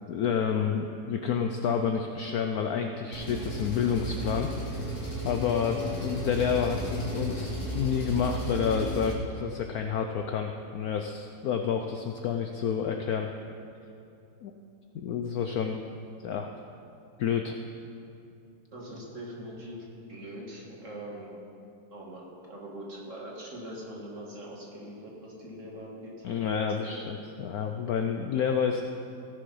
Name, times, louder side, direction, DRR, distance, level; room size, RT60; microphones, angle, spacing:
voice 1, 0.1-4.5 5.2-13.3 14.4-14.5 14.9-15.9 16.2-16.5 17.2-17.6 26.2-28.8, left 7 dB, 70° left, 5 dB, 0.9 m, -29 dB
Engine, 3.1-9.1, equal, 40° left, 1.8 m, -34 dB
voice 2, 18.7-21.3 21.9-26.1 26.8-27.1, right 1 dB, 40° right, -3 dB, 2.1 m, -42 dB
17.0 x 6.7 x 5.5 m, 2.6 s
omnidirectional pair, 2.1 m